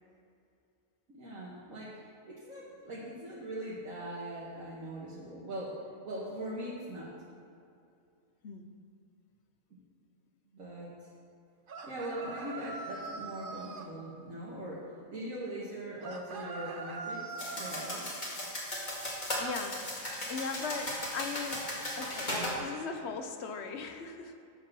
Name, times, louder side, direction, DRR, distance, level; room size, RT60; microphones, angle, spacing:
voice 1, 1.1-2.0 2.3-7.1 9.7-9.8 10.5-11.1 11.8-18.0, right 1 dB, 75° right, -7 dB, 1.9 m, -41 dB
sound 1, 11.7-13.9 16.0-18.0, right 3 dB, 45° right, 0.8 m, -42 dB
sound 2, 17.4-22.6, left 1 dB, 35° left, 2.2 m, -36 dB
voice 2, 18.8-19.8 20.3-21.6 22.0-24.4, left 5 dB, 55° left, 6 dB, 1.0 m, -39 dB
9.9 x 7.4 x 6.1 m, 2.5 s
omnidirectional pair, 1.4 m